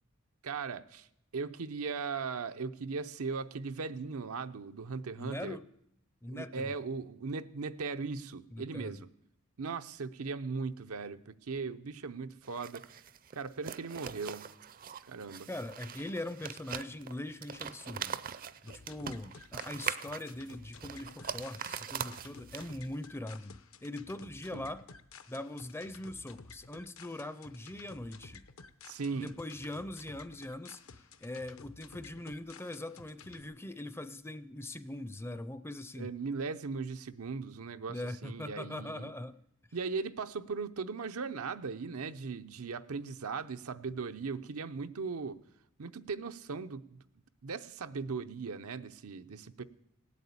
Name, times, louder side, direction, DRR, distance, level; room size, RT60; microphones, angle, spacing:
voice 1, 0.4-1.1 1.3-5.6 6.3-9.1 9.6-12.8 13.3-14.5 15.1-15.5 24.5-24.7 28.8-29.3 36.0-39.1 39.7-45.4 45.8-47.0 47.4-49.6, right 4 dB, 90° right, 9 dB, 0.7 m, -38 dB
voice 2, 5.2-5.6 6.2-6.7 8.5-9.0 15.5-18.2 18.6-24.8 25.3-28.4 29.1-30.8 31.2-36.1 37.9-39.4, left 1 dB, 10° left, 13 dB, 0.5 m, -41 dB
sound 1, 12.4-23.0, right 7 dB, 40° right, 0.5 m, -42 dB
sound 2, 18.7-33.4, left 5 dB, 70° left, 0.8 m, -54 dB
17.5 x 8.4 x 8.4 m, 0.77 s
head